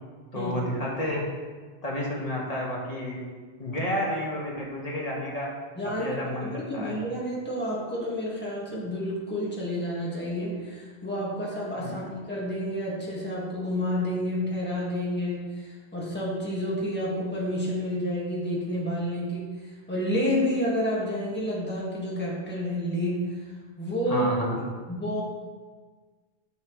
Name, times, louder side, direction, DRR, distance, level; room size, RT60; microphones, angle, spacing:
voice 1, 0.3-1.2 1.8-3.2 3.6-5.5 5.8-7.0 11.8-12.0 24.1-24.6, left 1 dB, 35° left, -4 dB, 1.9 m, -30 dB
voice 2, 5.8-19.5 19.9-23.4 23.8-24.3 24.9-25.2, equal, 10° left, -6 dB, 1.8 m, -29 dB
10.0 x 7.6 x 3.2 m, 1.4 s
omnidirectional pair, 1.1 m